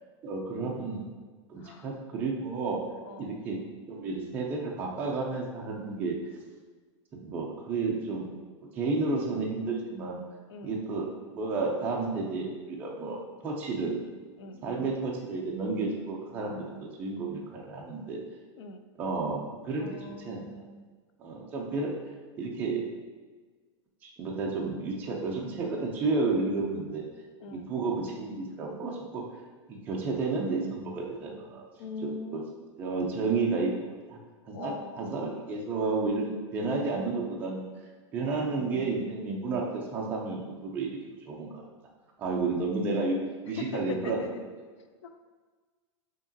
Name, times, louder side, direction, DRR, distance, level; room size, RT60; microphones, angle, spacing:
voice 1, 0.2-1.0 1.5-2.8 3.2-3.6 3.9-6.2 7.2-8.3 8.8-10.2 10.6-11.1 11.3-14.0 14.6-16.7 17.0-18.2 19.0-20.6 21.2-21.9 22.4-22.9 24.2-27.0 27.5-29.2 29.7-31.7 32.0-32.4 32.8-34.2 34.5-37.7 38.1-41.0 41.3-41.6 42.2-43.2 43.5-44.2, right 3 dB, 10° right, -2 dB, 0.3 m, -31 dB
voice 2, 1.6-1.9 3.0-3.4 10.5-10.8 14.4-14.6 18.6-18.8 19.8-20.9 27.4-27.7 31.8-32.5 34.5-35.2 38.2-39.0 43.6-44.4 45.0-45.1, left 4 dB, 75° left, 7 dB, 0.4 m, -41 dB
4.7 x 2.9 x 2.7 m, 1.5 s
supercardioid pair, 170°, 15 cm